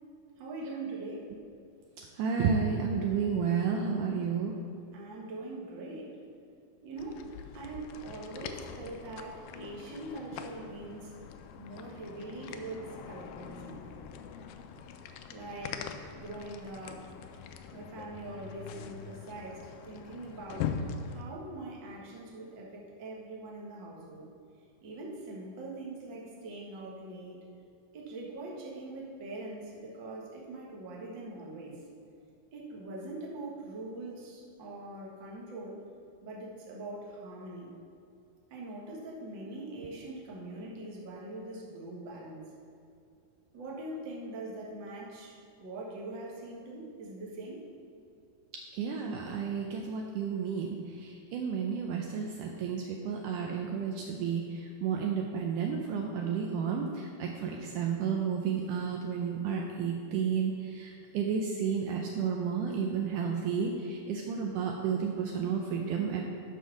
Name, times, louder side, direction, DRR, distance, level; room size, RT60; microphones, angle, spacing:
voice 1, 0.4-1.3 4.9-6.2 6.8-7.2 7.5-11.1 11.6-13.8 15.3-15.9 16.1-17.0 17.7-20.8 21.1-24.3 24.8-27.4 27.9-31.8 32.5-35.8 36.2-37.7 38.5-42.5 43.5-47.6, right 2 dB, 50° right, -3 dB, 1.5 m, -42 dB
voice 2, 2.2-4.5 48.7-66.2, right 6 dB, 80° right, 1 dB, 2.0 m, -32 dB
sound 1, 7.0-21.2, left 7 dB, 80° left, 2.0 m, -43 dB
11.5 x 4.5 x 6.1 m, 2.5 s
omnidirectional pair, 4.1 m